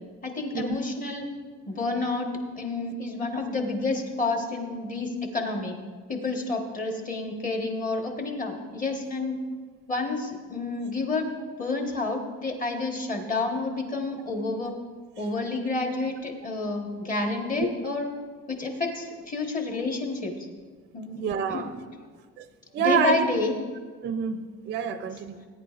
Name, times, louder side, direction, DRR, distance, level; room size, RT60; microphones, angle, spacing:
voice 1, 0.2-1.3 1.7-5.8 6.1-9.4 9.9-11.3 11.6-14.7 15.2-18.1 18.5-20.5 20.9-21.2 21.5-21.6 22.0-22.1 22.8-23.6 25.3-25.5, left 3 dB, 25° left, 2 dB, 1.3 m, -29 dB
voice 2, 21.1-21.7 22.7-23.2 24.0-25.3, right 7 dB, 35° right, 9 dB, 0.5 m, -27 dB
19.0 x 9.5 x 2.5 m, 1.5 s
cardioid pair, 170°, 30 cm